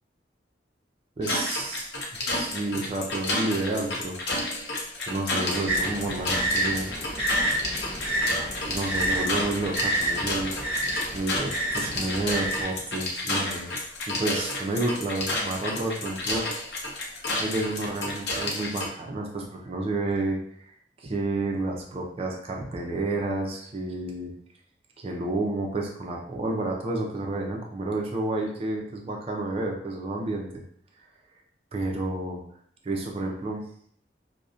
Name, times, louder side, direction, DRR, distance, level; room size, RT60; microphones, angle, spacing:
sound 1, 1.2-18.9, left 2 dB, 70° left, 0.5 m, -31 dB
voice 1, 1.2-1.9 2.3-4.2 5.0-6.9 7.7-8.0 8.7-10.6 11.1-13.7 14.1-16.5 17.0-20.4 21.0-24.3 25.0-30.6 31.7-32.4 32.8-33.6, right 2 dB, 35° right, 0 dB, 0.4 m, -30 dB
sound 2, 5.7-12.6, right 1 dB, 10° right, 0.9 m, -29 dB
2.5 x 2.0 x 2.5 m, 0.62 s
head